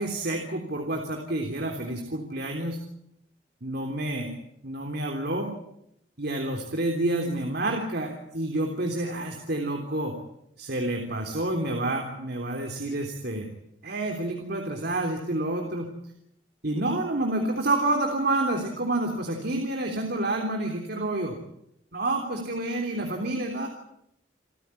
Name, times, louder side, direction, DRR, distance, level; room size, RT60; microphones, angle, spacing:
voice 1, 0.0-2.8 3.6-4.3 4.6-5.5 6.2-10.2 10.6-13.5 13.8-15.9 16.6-21.4 21.9-23.7, right 2 dB, 60° right, 3 dB, 3.4 m, -29 dB
28.5 x 15.0 x 9.8 m, 0.79 s
head